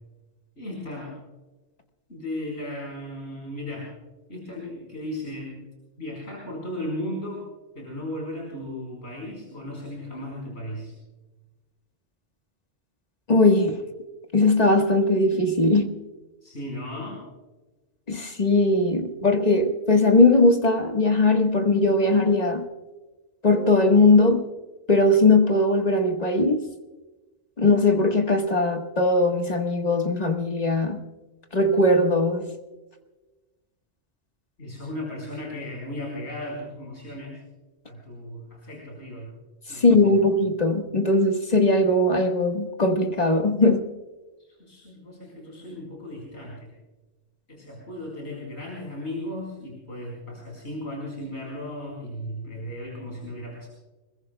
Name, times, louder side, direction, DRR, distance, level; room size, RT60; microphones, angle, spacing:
voice 1, 0.6-1.1 2.1-3.9 4.3-5.6 6.0-7.5 7.7-10.9 16.4-17.2 34.6-37.4 37.8-39.3 39.7-40.1 44.4-46.7 47.5-53.7, left 1 dB, 75° left, 4.8 m, -36 dB
voice 2, 13.3-13.8 14.3-15.9 18.1-22.7 23.4-24.5 24.9-26.6 27.6-31.0 31.5-32.4 39.7-43.8, left 2 dB, 35° left, 1.6 m, -20 dB
25.0 x 21.5 x 2.3 m
omnidirectional pair, 1.1 m